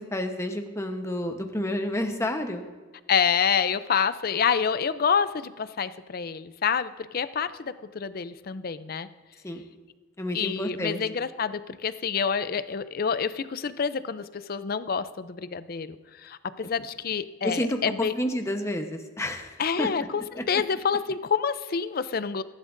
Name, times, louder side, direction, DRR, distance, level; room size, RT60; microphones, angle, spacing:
voice 1, 0.1-2.6 9.4-9.6 10.2-11.0 17.4-17.8 18.1-19.9 20.4-20.5, left 1 dB, 15° left, 5 dB, 1.0 m, -30 dB
voice 2, 3.1-9.1 10.3-16.0 16.2-18.1 19.6-22.4, left 6 dB, 50° left, 14 dB, 0.5 m, -27 dB
21.0 x 11.5 x 2.6 m, 1.3 s
head